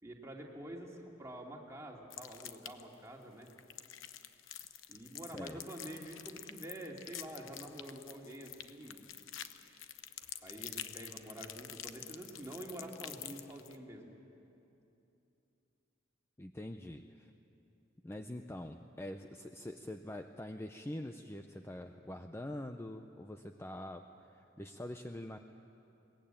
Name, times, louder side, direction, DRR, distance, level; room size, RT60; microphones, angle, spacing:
voice 1, 0.0-3.5 4.9-9.0 10.4-14.1, right 1 dB, 15° right, -1 dB, 2.4 m, -47 dB
sound 1, 2.1-2.9 3.4-13.7, left 11 dB, 85° left, 0.9 m, -47 dB
voice 2, 5.2-5.6 16.4-17.3 18.0-25.4, left 1 dB, 15° left, 6 dB, 0.6 m, -45 dB
22.0 x 19.5 x 8.9 m, 2.8 s
head